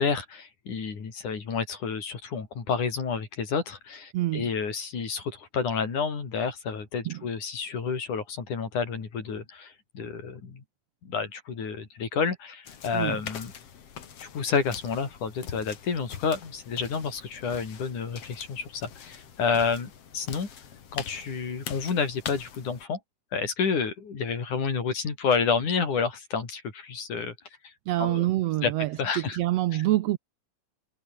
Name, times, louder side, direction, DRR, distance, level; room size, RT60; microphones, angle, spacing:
voice 1, 0.0-10.6 11.0-13.5 14.2-20.5 20.9-23.0 23.3-27.4 27.6-27.7 28.0-28.3 28.6-28.7 29.0-29.4 29.7-29.8, left 5 dB, 70° left, 5.8 m, -30 dB
voice 2, 4.1-4.5 7.0-7.3 12.9-13.2 27.9-30.2, right 15 dB, 75° right, 1.6 m, -26 dB
sound 1, 12.6-22.8, left 8 dB, 50° left, 2.9 m, -43 dB
omnidirectional pair, 3.6 m